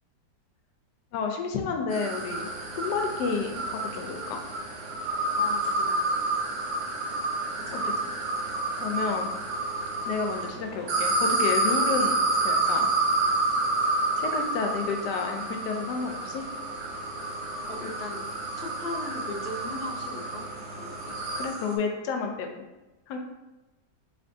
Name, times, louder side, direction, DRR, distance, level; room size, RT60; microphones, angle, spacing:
voice 1, 1.1-4.4 7.7-8.0 8.8-9.3 10.1-12.9 14.2-16.4 21.4-22.5 23.1-23.2, left 5 dB, 80° left, 4 dB, 1.2 m, -31 dB
sound 1, 1.9-10.5 10.9-21.8, right 2 dB, 85° right, 1.4 m, -29 dB
sound 2, 2.1-21.5, right 1 dB, 60° right, 0.6 m, -43 dB
voice 2, 5.4-6.0 7.6-8.1 17.7-18.2 18.6-20.4 20.7-21.1, left 2 dB, 50° left, -1 dB, 0.7 m, -39 dB
4.2 x 3.5 x 2.6 m, 1.1 s
omnidirectional pair, 1.8 m